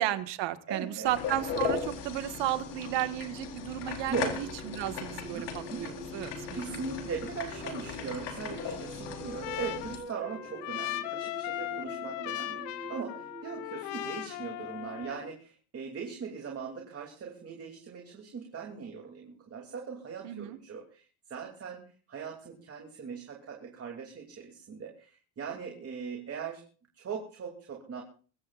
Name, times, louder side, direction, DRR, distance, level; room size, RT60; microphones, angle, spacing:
voice 1, 0.0-6.8 20.2-20.6, right 14 dB, 65° right, 9 dB, 1.7 m, -34 dB
voice 2, 0.7-1.2 1.5-1.8 4.0-4.4 5.3-5.9 6.5-26.6 26.9-28.0, right 6 dB, 30° right, 1 dB, 2.9 m, -40 dB
sound 1, 1.0-10.0, left 6 dB, 60° left, 4.0 m, -37 dB
sound 2, 4.1-15.1, right 3 dB, 15° right, 0.9 m, -47 dB
Trumpet, 8.6-15.3, left 16 dB, 90° left, 1.3 m, -38 dB
23.5 x 15.0 x 2.5 m, 0.39 s
cardioid pair, 135°, 47 cm